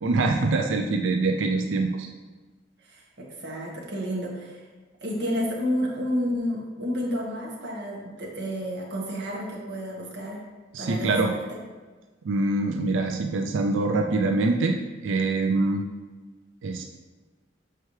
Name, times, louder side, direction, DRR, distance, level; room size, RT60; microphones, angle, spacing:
voice 1, 0.0-2.1 10.7-11.3 12.2-14.8 15.0-15.8 16.6-16.8, right 3 dB, 90° right, 4 dB, 0.5 m, -24 dB
voice 2, 2.8-4.6 5.0-10.4 10.8-11.6, equal, 65° right, -3 dB, 1.4 m, -30 dB
6.8 x 4.6 x 3.2 m, 1.3 s
head